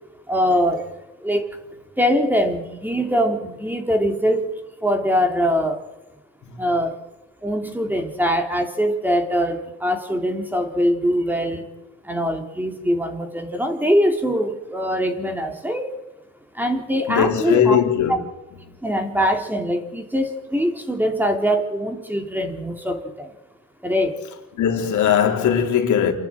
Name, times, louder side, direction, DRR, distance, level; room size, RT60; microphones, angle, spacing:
voice 1, 0.3-0.9 1.2-1.5 2.0-4.5 4.8-5.8 6.6-6.9 7.4-11.7 12.0-15.9 16.5-17.8 18.8-23.3 23.8-24.2, equal, 5° right, 3.4 m, -22 dB
voice 2, 17.1-18.2 24.5-26.1, left 8 dB, 75° left, 3.6 m, -19 dB
28.5 x 11.0 x 8.9 m
cardioid pair, 90°, 30 cm